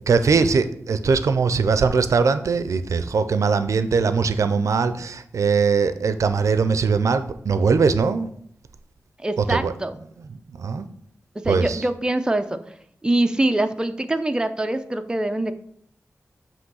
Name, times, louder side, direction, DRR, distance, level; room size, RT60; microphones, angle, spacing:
voice 1, 0.1-8.3 9.4-9.7 10.3-10.9 11.5-11.8, right 5 dB, 85° right, 11 dB, 0.4 m, -21 dB
voice 2, 9.2-10.0 11.4-12.6 13.0-15.5, right 1 dB, 15° right, 8 dB, 0.5 m, -23 dB
7.8 x 3.0 x 6.2 m, 0.67 s
wide cardioid pair, 85°, 5 cm